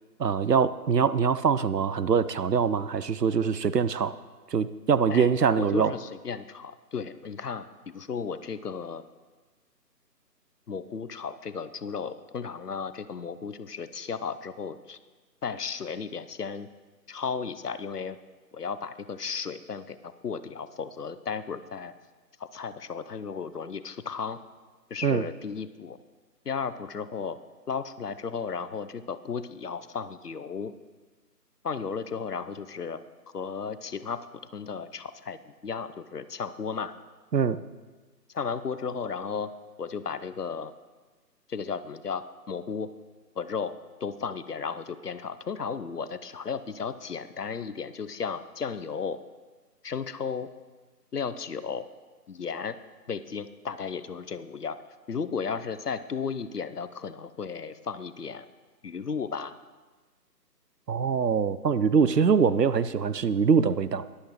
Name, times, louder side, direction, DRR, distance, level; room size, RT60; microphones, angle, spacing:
voice 1, 0.2-4.2 4.5-5.9 25.0-25.3 37.3-37.6 60.9-64.0, right 6 dB, 75° right, 16 dB, 0.7 m, -23 dB
voice 2, 5.6-9.0 10.7-15.0 15.4-16.7 17.1-18.2 18.5-21.9 22.4-24.4 24.9-26.0 26.4-27.4 27.7-30.7 31.6-33.0 33.3-34.3 34.5-36.9 38.3-39.5 39.8-40.7 41.5-42.9 43.4-43.7 44.0-49.2 49.8-50.5 51.1-51.9 52.3-52.8 53.1-54.8 55.1-58.4 58.8-59.5, left 6 dB, 70° left, 13 dB, 0.8 m, -34 dB
22.0 x 8.5 x 3.0 m, 1.3 s
figure-of-eight pair, 155°, 49 cm